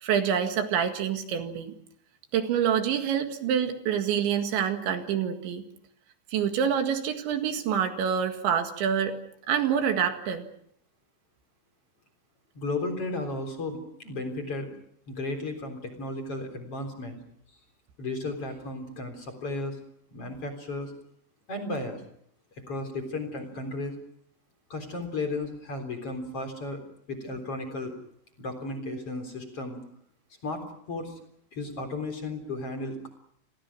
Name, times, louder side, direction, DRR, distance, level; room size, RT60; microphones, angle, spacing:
voice 1, 0.0-1.7 2.3-5.6 6.3-9.2 9.5-10.5, right 8 dB, 75° right, 6 dB, 4.1 m, -26 dB
voice 2, 12.5-14.7 15.1-17.2 18.0-19.8 20.1-20.9 21.5-22.0 22.7-23.9 24.7-26.8 27.1-27.9 28.4-29.8 30.4-30.6 30.9-31.2 31.5-33.1, left 2 dB, 30° left, 5 dB, 4.2 m, -34 dB
30.0 x 23.0 x 6.1 m, 0.70 s
omnidirectional pair, 5.5 m